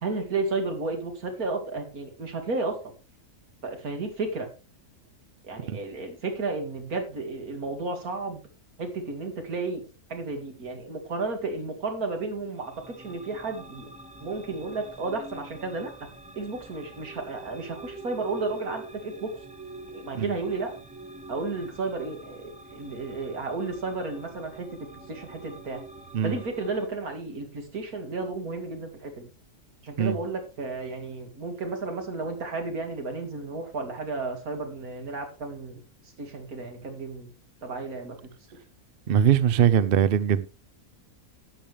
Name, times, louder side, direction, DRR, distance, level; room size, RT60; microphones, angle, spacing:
voice 1, 0.0-2.8 3.6-4.5 5.4-8.4 8.8-9.8 10.1-13.9 14.2-15.9 16.4-19.3 19.9-20.7 21.3-24.7 25.1-25.8 26.2-29.3 29.8-35.8 36.2-37.3 37.6-38.2, right 3 dB, 80° right, 2.6 m, -32 dB
sound 1, 12.6-26.9, right 2 dB, 5° right, 0.7 m, -45 dB
voice 2, 39.1-40.5, right 9 dB, 55° right, 0.7 m, -21 dB
11.5 x 8.6 x 3.4 m
omnidirectional pair, 1.5 m